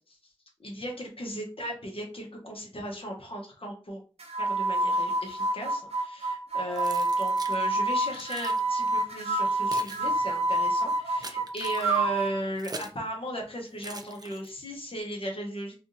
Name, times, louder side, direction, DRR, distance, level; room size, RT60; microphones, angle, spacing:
voice 1, 0.6-4.0 4.4-15.7, equal, 60° left, 1 dB, 1.0 m, -36 dB
sound 1, 4.2-12.4, right 2 dB, 75° right, 0.7 m, -28 dB
Keys jangling, 6.7-7.6 8.1-8.6 9.3-13.0 13.8-14.7, right 3 dB, 40° right, 0.5 m, -43 dB
3.5 x 2.4 x 2.7 m, 0.37 s
wide cardioid pair, 55°, 11 cm